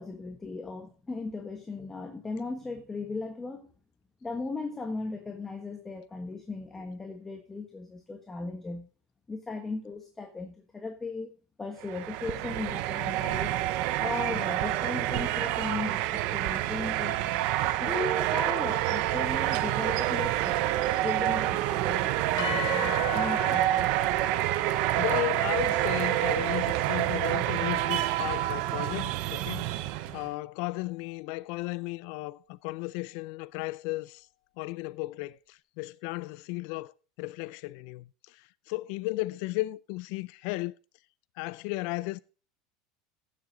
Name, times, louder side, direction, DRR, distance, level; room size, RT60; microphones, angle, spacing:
voice 1, 0.0-3.7 4.2-8.9 9.3-11.3 11.6-13.6 14.0-17.2 17.8-20.7 21.0-23.9 30.0-30.2, left 3 dB, 15° left, 1.4 m, -37 dB
sound 1, 11.8-30.3, right 15 dB, 60° right, 0.8 m, -28 dB
sound 2, 22.4-30.6, left 11 dB, 80° left, 1.5 m, -41 dB
voice 2, 25.0-29.9 30.1-34.3 34.6-36.9 37.2-40.7 41.4-42.2, left 21 dB, 65° left, 0.4 m, -35 dB
15.5 x 7.5 x 3.8 m
supercardioid pair, 125°, 2 cm